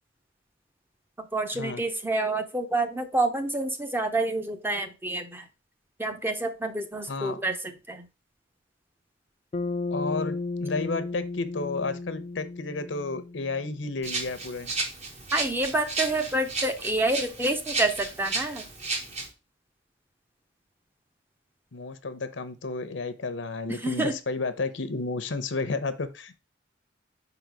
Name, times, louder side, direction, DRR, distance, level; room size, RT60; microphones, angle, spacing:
voice 1, 1.2-5.5 6.0-8.1 15.3-18.7 23.7-24.2, right 2 dB, 10° right, 7 dB, 0.7 m, -28 dB
voice 2, 7.1-7.4 9.9-14.7 21.7-26.4, left 3 dB, 85° left, 12 dB, 0.7 m, -32 dB
Bass guitar, 9.5-13.9, left 3 dB, 35° left, 0.4 m, -34 dB
Rattle (instrument), 14.0-19.3, right 3 dB, 40° right, 1.2 m, -33 dB
5.4 x 3.9 x 4.6 m, 0.29 s
head